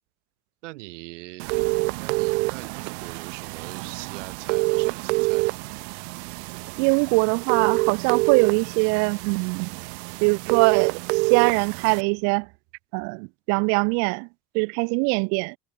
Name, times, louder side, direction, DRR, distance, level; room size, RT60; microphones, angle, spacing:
voice 1, 0.6-1.6 2.0-5.6, right 20 dB, 85° right, 4.2 m, -41 dB
sound 1, 1.4-12.0, right 31 dB, 65° right, 1.2 m, -27 dB
voice 2, 6.8-9.8 10.2-12.5 12.9-14.3 14.5-15.5, right 38 dB, 50° right, 0.6 m, -23 dB
supercardioid pair, 155°, 36 cm